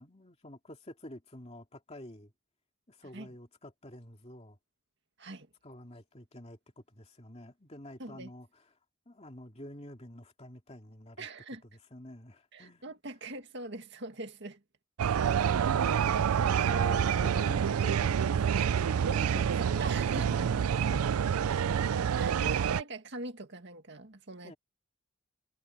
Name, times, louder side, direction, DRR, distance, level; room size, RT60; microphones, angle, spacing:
voice 1, 0.0-2.3 2.9-4.6 5.6-8.6 9.1-11.3 11.7-12.8 15.5-16.4 16.9-20.6 20.9-21.2 21.7-22.6 24.4-24.6, left 1 dB, 30° left, 2.6 m, -49 dB
voice 2, 11.2-11.6 12.5-14.6 16.1-17.4 19.6-20.5 22.2-24.5, right 2 dB, 55° right, 2.1 m, -42 dB
sound 1, 15.0-22.8, right 7 dB, 80° right, 0.4 m, -27 dB
head